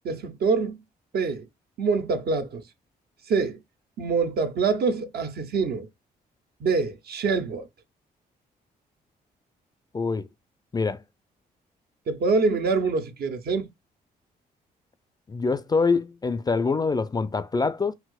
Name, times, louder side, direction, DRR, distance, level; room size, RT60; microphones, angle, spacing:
voice 1, 0.0-0.8 1.1-1.4 1.8-2.6 3.3-3.6 4.0-5.9 6.6-7.7 12.1-13.7, right 4 dB, 60° right, 0.7 m, -25 dB
voice 2, 9.9-10.3 10.7-11.0 15.3-17.9, left 4 dB, 20° left, 0.3 m, -25 dB
4.2 x 2.0 x 2.3 m
supercardioid pair, 65°, 18 cm